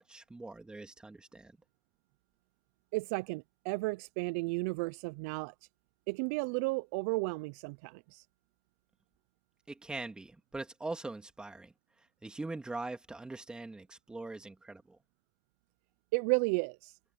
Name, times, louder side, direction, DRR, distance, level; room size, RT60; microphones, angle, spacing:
voice 1, 0.0-1.6 9.7-15.0, right 2 dB, 10° right, 2.4 m, -42 dB
voice 2, 2.9-5.5 6.1-8.2 16.1-16.9, right 28 dB, 65° right, 0.5 m, -33 dB
supercardioid pair, 115°, 9 cm